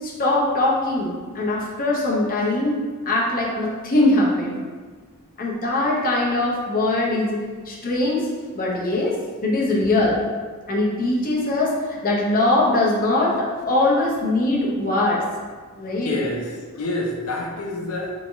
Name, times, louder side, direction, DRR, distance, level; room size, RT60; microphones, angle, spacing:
voice 1, 0.0-2.8 3.1-4.6 5.4-7.4 7.7-8.2 8.5-9.2 9.4-10.2 10.7-15.2 15.8-16.1, left 2 dB, 40° left, -3 dB, 0.7 m, -21 dB
voice 2, 16.0-18.1, left 2 dB, 80° left, 1 dB, 0.6 m, -28 dB
3.6 x 3.2 x 2.6 m, 1.5 s
head